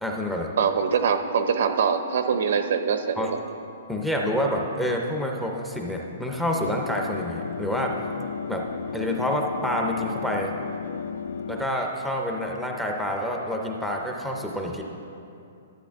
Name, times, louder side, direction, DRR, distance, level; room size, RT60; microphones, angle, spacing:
voice 1, 0.0-0.5 3.2-3.3 3.9-8.0 8.5-8.7 8.9-10.5 11.5-14.8, left 1 dB, ahead, 0 dB, 0.5 m, -28 dB
voice 2, 0.6-3.4, right 6 dB, 60° right, 8 dB, 0.6 m, -23 dB
sound 1, 6.6-11.6, left 6 dB, 80° left, 0.4 m, -34 dB
12.5 x 7.8 x 3.5 m, 2.6 s
hypercardioid pair, 170°, 0 cm